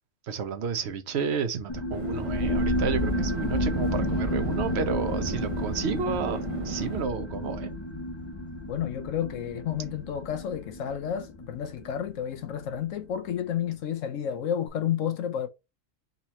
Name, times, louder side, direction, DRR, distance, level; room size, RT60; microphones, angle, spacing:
voice 1, 0.3-6.4 6.6-7.7, right 5 dB, 55° right, 1.0 m, -31 dB
sound 1, 1.7-12.8, left 1 dB, 30° left, 0.6 m, -31 dB
sound 2, 1.9-7.0, right 5 dB, 40° right, 0.5 m, -37 dB
voice 2, 8.7-15.5, left 9 dB, 75° left, 1.0 m, -31 dB
4.1 x 3.0 x 4.1 m
omnidirectional pair, 1.4 m